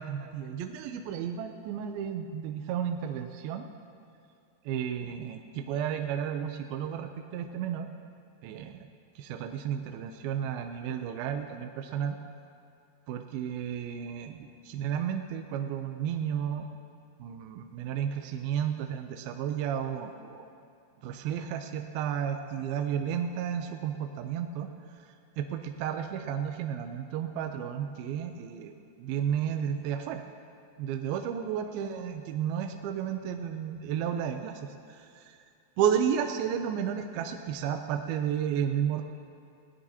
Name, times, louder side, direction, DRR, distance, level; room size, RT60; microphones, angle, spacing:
voice 1, 0.0-3.6 4.7-7.9 8.4-8.9 9.2-12.2 13.1-16.7 17.2-20.5 21.0-24.7 24.9-30.2 30.8-35.4 35.8-39.0, right 8 dB, 80° right, 5 dB, 2.4 m, -32 dB
19.5 x 18.0 x 2.8 m, 2.5 s
omnidirectional pair, 4.4 m